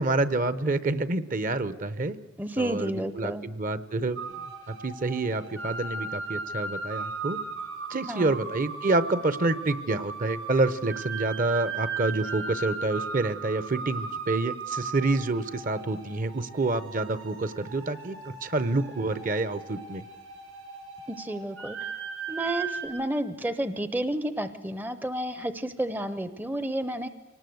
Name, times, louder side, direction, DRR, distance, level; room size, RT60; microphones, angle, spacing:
voice 1, 0.0-2.2 2.6-4.3 4.7-7.4 7.9-20.0, right 2 dB, 40° right, 15 dB, 0.8 m, -28 dB
voice 2, 2.4-3.4 8.1-8.4 21.1-21.8 22.3-27.1, right 1 dB, 10° right, 12 dB, 0.6 m, -31 dB
sound 1, 4.2-22.9, right 4 dB, 75° right, 5.8 m, -37 dB
25.0 x 18.5 x 7.9 m, 1.3 s
head